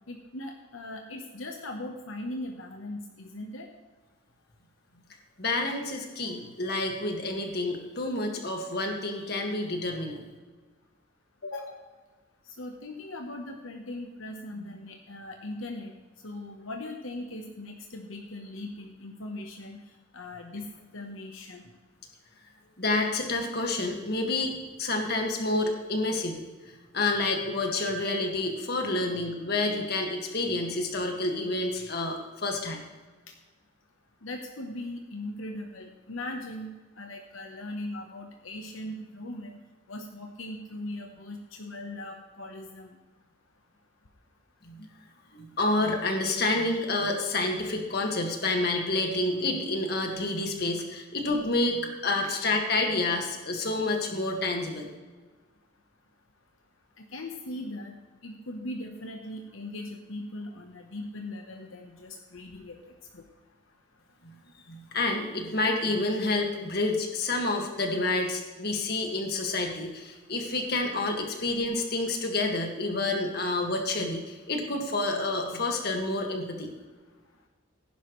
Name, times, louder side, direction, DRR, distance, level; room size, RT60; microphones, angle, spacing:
voice 1, 0.1-3.7 11.4-11.8 12.5-15.9 16.2-19.8 20.1-20.7 20.9-21.7 33.3-33.4 34.2-39.6 39.9-42.9 57.0-58.0 58.2-62.8 63.1-63.2, left 1 dB, 80° left, 3 dB, 1.1 m, -39 dB
voice 2, 5.4-10.2 22.8-26.5 26.9-32.8 44.6-44.9 45.3-54.9 64.6-76.7, left 2 dB, 50° left, 2 dB, 1.9 m, -29 dB
16.5 x 10.5 x 3.2 m, 1.3 s
head